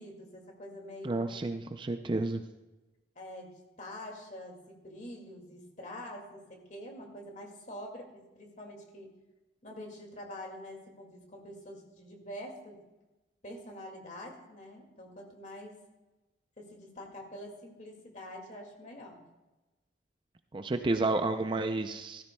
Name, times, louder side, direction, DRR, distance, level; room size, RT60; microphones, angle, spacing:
voice 1, 0.0-1.3 3.2-9.1 9.6-12.8 13.4-15.7 16.6-19.2, left 1 dB, 40° left, 1 dB, 2.1 m, -46 dB
voice 2, 1.0-2.4 20.5-22.2, right 2 dB, 25° right, 8 dB, 0.4 m, -31 dB
16.5 x 13.5 x 2.2 m, 1.1 s
head